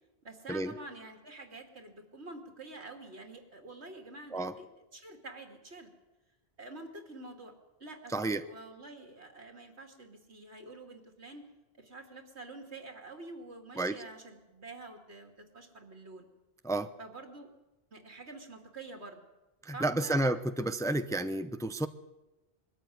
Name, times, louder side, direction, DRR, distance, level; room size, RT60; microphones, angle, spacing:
voice 1, 0.2-4.7 4.9-5.9 6.6-7.5 7.8-11.5 11.8-16.3 17.0-17.5 17.9-19.2 19.7-20.4, right 2 dB, 85° right, 4 dB, 2.9 m, -47 dB
voice 2, 8.1-8.5 13.8-14.0 16.6-16.9 19.6-21.9, right 2 dB, 5° left, 10 dB, 0.7 m, -31 dB
22.0 x 13.5 x 9.4 m, 1.0 s
omnidirectional pair, 1.1 m